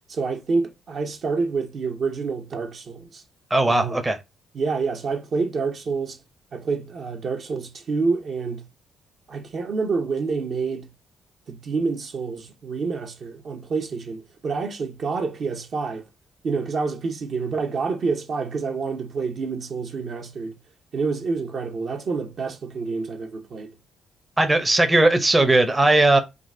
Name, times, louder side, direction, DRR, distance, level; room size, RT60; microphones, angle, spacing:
voice 1, 0.1-3.2 3.7-4.0 4.5-6.2 6.5-8.6 9.3-10.9 11.5-16.1 16.4-20.5 20.9-23.7, right 4 dB, 55° right, 0.8 m, -27 dB
voice 2, 3.5-4.2 24.4-26.2, right 2 dB, 15° right, 0.7 m, -18 dB
3.8 x 2.4 x 3.7 m
cardioid pair, 90°, 0 cm